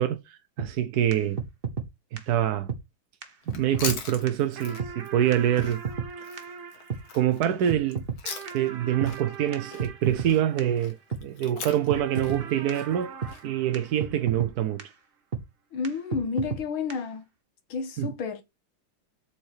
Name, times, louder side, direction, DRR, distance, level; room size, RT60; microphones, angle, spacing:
voice 1, 0.0-1.4 2.1-2.7 3.5-5.8 7.1-8.0 8.5-13.2 13.4-14.9 18.0-18.1, right 11 dB, 65° right, 1.0 m, -25 dB
sound 1, 0.6-0.7 1.1-1.2 1.4-1.9 2.2-2.3 2.7-2.8 3.2-3.3 3.5-4.0 4.3-4.4 4.8-4.9 5.3-5.4 5.6-6.1 6.4-6.5 6.9-7.0 7.4-8.2 8.5-8.6 9.0-9.1 9.5-9.6 9.8-10.3 10.6-10.7 11.1-11.2 11.6-11.7 11.9-12.4 12.7-12.8 13.2-13.3 13.7-13.8 14.0-14.5 14.8-14.9 15.3-15.4 15.8-15.9 16.1-16.6 16.9-17.0, right 6 dB, 35° right, 1.0 m, -31 dB
Chewing mastication, 3.4-8.8 9.0-13.4, left 6 dB, 50° left, 1.7 m, -40 dB
sound 2, 4.6-11.3 11.9-14.7, right 6 dB, 85° right, 2.4 m, -43 dB
voice 2, 15.7-17.3 17.7-18.4, left 5 dB, 75° left, 2.0 m, -30 dB
7.5 x 4.4 x 6.6 m
omnidirectional pair, 2.3 m